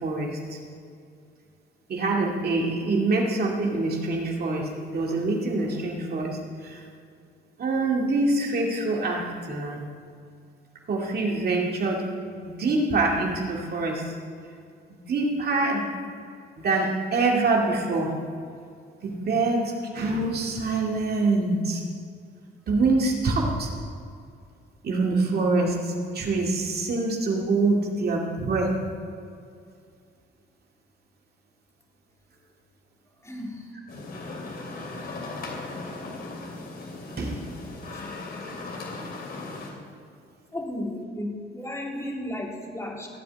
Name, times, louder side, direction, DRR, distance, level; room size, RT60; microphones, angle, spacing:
voice 1, 0.0-0.6 1.9-6.8 7.6-9.8 10.9-12.1 12.4-14.1 14.9-15.9 16.6-18.2 19.0-21.8 22.7-23.7 24.8-28.8 37.2-37.4, right 3 dB, 50° right, -1 dB, 2.3 m, -25 dB
voice 2, 33.2-33.8 37.6-38.2 40.5-43.1, left 1 dB, 15° left, -1 dB, 2.9 m, -35 dB
sound 1, 33.9-39.7, left 3 dB, 50° left, 3.1 m, -37 dB
15.0 x 5.1 x 9.3 m, 2.3 s
cardioid pair, 90°, 20 cm